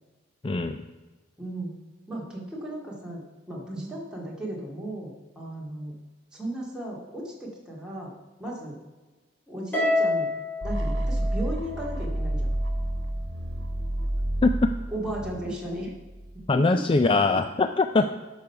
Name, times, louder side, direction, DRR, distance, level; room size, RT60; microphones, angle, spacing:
voice 1, 0.4-0.8 14.4-14.5 16.5-18.0, left 3 dB, 30° left, 8 dB, 0.4 m, -22 dB
voice 2, 1.4-1.7 2.1-3.2 3.5-5.9 6.3-8.1 8.4-8.8 9.5-10.3 10.6-12.5 14.9-15.9 16.5-16.6, right 1 dB, 5° right, -4 dB, 2.3 m, -35 dB
Harp, 9.7-12.2, left 2 dB, 10° left, 3.9 m, -28 dB
sound 1, 10.6-16.5, right 1 dB, 80° right, 1.2 m, -30 dB
11.5 x 6.4 x 5.7 m, 1.2 s
head